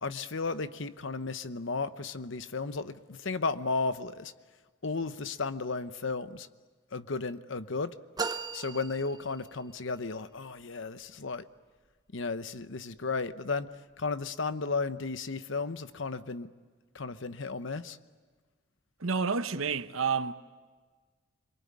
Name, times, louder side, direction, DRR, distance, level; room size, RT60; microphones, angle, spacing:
voice 1, 0.0-4.3 4.8-6.5 6.9-7.9 8.5-11.4 12.1-13.7 14.0-16.5 16.9-18.0, left 4 dB, 65° left, 0.9 m, -34 dB
sound 1, 8.2-9.8, right 4 dB, 20° right, 0.8 m, -37 dB
voice 2, 19.0-20.3, right 5 dB, 80° right, 1.0 m, -29 dB
26.0 x 23.0 x 9.7 m
head